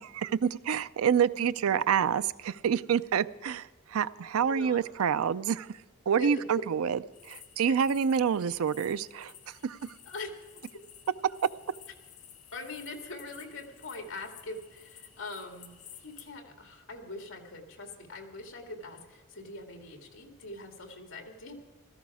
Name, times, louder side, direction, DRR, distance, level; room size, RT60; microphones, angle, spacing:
voice 1, 0.0-5.7 6.1-7.0 7.3-9.3 9.6-9.8, right 7 dB, 90° right, 16 dB, 0.4 m, -27 dB
voice 2, 4.4-4.8 6.2-6.5 10.1-10.3 12.5-21.6, left 2 dB, 65° left, 3 dB, 2.2 m, -42 dB
sound 1, 7.1-16.3, left 10 dB, 85° left, 1.8 m, -54 dB
16.5 x 14.0 x 4.9 m, 1.3 s
head